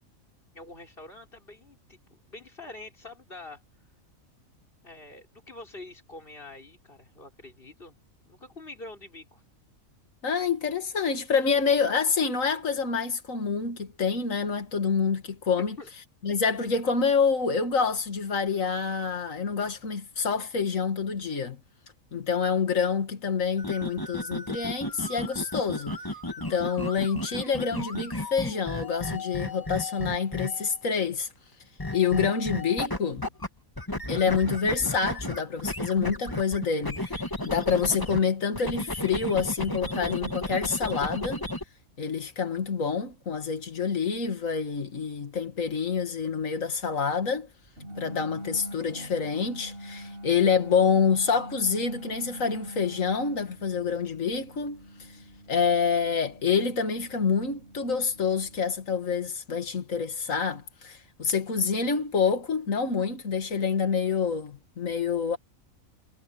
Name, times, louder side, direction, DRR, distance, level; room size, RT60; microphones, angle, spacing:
voice 1, 0.5-3.6 4.8-8.0 8.3-9.4 15.8-15.9 34.8-34.9, left 2 dB, 40° left, 5.9 m, -46 dB
voice 2, 10.2-15.7 16.2-21.6 22.1-26.0 26.4-31.3 31.9-33.2 34.1-41.4 42.0-47.5 48.0-55.1 55.5-65.4, left 5 dB, 70° left, 2.5 m, -27 dB
sound 1, 23.6-30.8 31.8-33.5 33.8-38.2 38.5-41.6, left 1 dB, 15° left, 2.3 m, -34 dB
sound 2, 47.8-58.6, equal, 40° right, 6.8 m, -44 dB
omnidirectional pair, 1.4 m